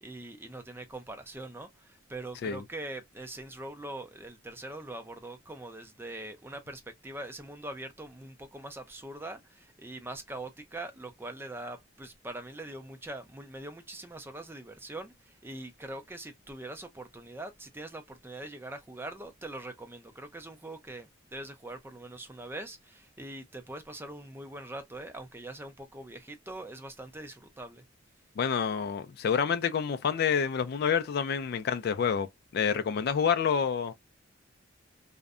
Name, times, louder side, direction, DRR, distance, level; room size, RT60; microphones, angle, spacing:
voice 1, 0.0-27.8, right 2 dB, 10° right, 0.4 m, -43 dB
voice 2, 28.4-33.9, left 7 dB, 55° left, 0.3 m, -28 dB
2.6 x 2.1 x 2.3 m
head